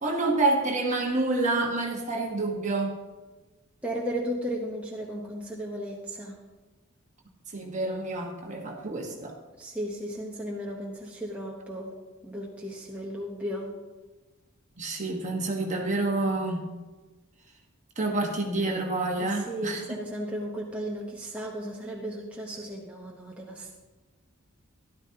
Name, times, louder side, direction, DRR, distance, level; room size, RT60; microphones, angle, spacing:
voice 1, 0.0-2.9 7.5-9.3 14.8-16.6 18.0-20.0, right 2 dB, 35° right, 1 dB, 1.4 m, -28 dB
voice 2, 3.8-6.4 9.6-13.7 15.3-15.4 19.2-23.7, equal, 5° right, -3 dB, 0.9 m, -35 dB
13.0 x 12.0 x 2.9 m, 1.2 s
head